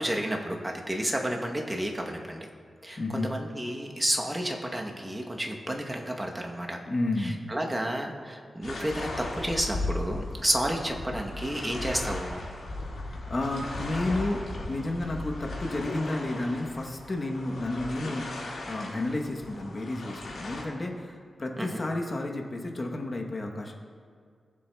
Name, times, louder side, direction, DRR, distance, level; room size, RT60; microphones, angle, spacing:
voice 1, 0.0-2.4 2.8-6.8 7.5-12.4 21.6-21.8, right 1 dB, 15° right, 1 dB, 0.9 m, -31 dB
voice 2, 3.0-3.3 6.9-7.4 13.0-23.8, left 2 dB, 35° left, 2 dB, 0.9 m, -31 dB
sound 1, 8.6-20.6, left 2 dB, 90° left, 1.8 m, -37 dB
17.5 x 7.4 x 2.2 m, 2.1 s
wide cardioid pair, 130°, 0 cm